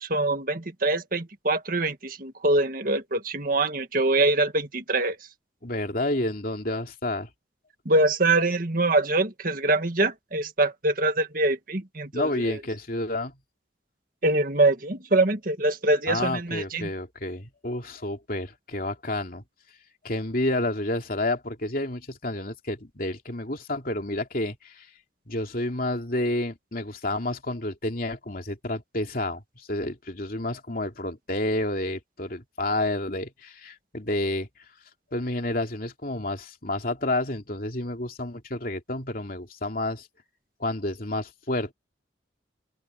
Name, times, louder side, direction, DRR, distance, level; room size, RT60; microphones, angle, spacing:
voice 1, 0.0-5.2 7.9-12.6 14.2-16.9, right 2 dB, 50° right, 1.9 m, -24 dB
voice 2, 5.6-7.3 12.1-13.3 16.1-19.4 20.0-24.9 25.3-29.4 29.7-34.5 35.1-40.1 40.6-41.7, left 1 dB, 50° left, 3.0 m, -30 dB
open air
head